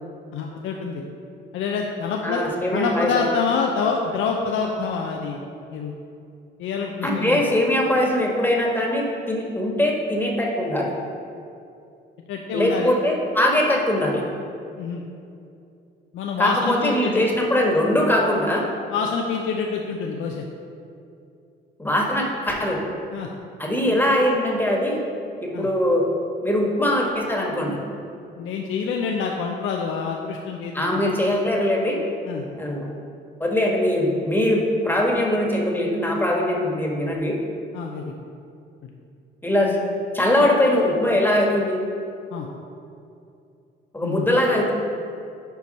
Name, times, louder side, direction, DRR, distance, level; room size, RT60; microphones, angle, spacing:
voice 1, 0.3-1.0 1.5-2.4 2.7-5.4 5.7-6.0 6.6-7.4 12.3-12.9 14.8-15.0 16.1-17.2 18.9-20.5 23.1-23.3 25.5-25.7 28.4-31.1 32.3-32.5 37.7-38.1 42.3-42.5 44.0-44.3, left 5 dB, 80° left, 1 dB, 0.6 m, -27 dB
voice 2, 2.2-3.2 7.0-10.9 12.5-14.2 16.4-18.7 21.8-22.8 23.6-25.0 25.4-26.1 26.4-27.8 30.7-32.0 32.6-32.9 33.4-37.4 39.4-39.8 40.1-41.8 43.9-44.8, left 1 dB, 10° left, -1 dB, 1.4 m, -21 dB
6.9 x 4.6 x 5.3 m, 2.6 s
cardioid pair, 90°, 20 cm